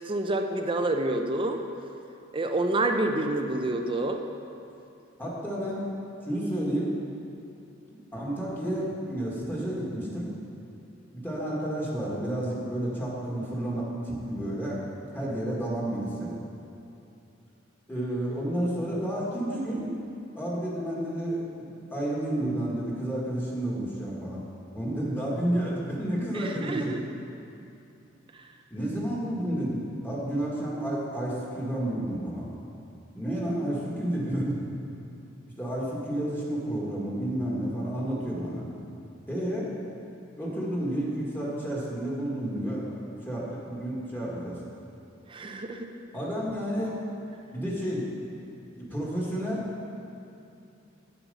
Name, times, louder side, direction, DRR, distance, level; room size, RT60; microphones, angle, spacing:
voice 1, 0.1-1.6 2.3-4.2 26.3-27.0 45.3-45.9, right 2 dB, 25° right, 5 dB, 0.6 m, -28 dB
voice 2, 5.2-5.9 6.3-6.9 8.1-10.4 11.1-14.8 15.1-16.3 17.9-19.9 20.3-24.4 24.7-27.0 28.7-32.5 33.1-34.6 35.6-38.6 39.3-39.7 40.4-44.6 46.1-47.0 47.5-48.1 48.8-49.7, right 1 dB, 10° left, -6 dB, 1.7 m, -31 dB
9.6 x 7.1 x 5.5 m, 2.7 s
head